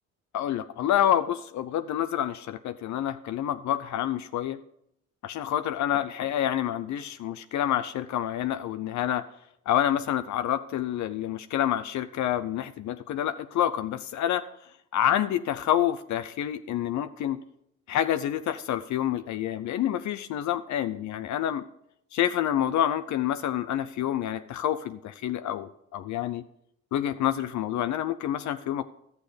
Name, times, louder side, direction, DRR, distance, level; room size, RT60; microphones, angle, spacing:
voice 1, 0.3-4.6 5.2-9.2 9.7-14.4 14.9-17.4 17.9-21.6 22.1-26.4 26.9-28.8, left 11 dB, 70° left, 11 dB, 0.6 m, -28 dB
12.0 x 8.1 x 5.1 m, 0.74 s
cardioid pair, 90°, 30 cm